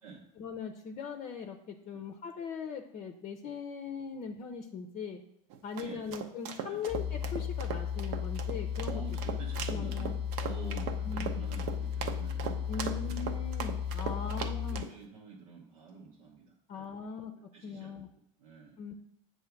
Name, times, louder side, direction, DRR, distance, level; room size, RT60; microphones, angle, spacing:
voice 1, 0.4-5.2 5.6-9.0 9.7-10.2 10.7-10.8 11.0-11.3 12.7-14.9 16.7-17.3 17.6-18.1 18.8-18.9, left 6 dB, 40° left, 5 dB, 0.6 m, -40 dB
sound 1, 5.5-14.9, right 8 dB, 60° right, 0.7 m, -39 dB
voice 2, 5.7-6.1 6.7-6.8 8.8-13.3 14.1-17.0 17.3-18.0 18.4-18.8, right 5 dB, 85° right, -2 dB, 1.0 m, -48 dB
sound 2, 6.9-14.8, left 8 dB, ahead, 0.9 m, -35 dB
7.7 x 2.7 x 5.8 m, 0.79 s
supercardioid pair, 110°, 18 cm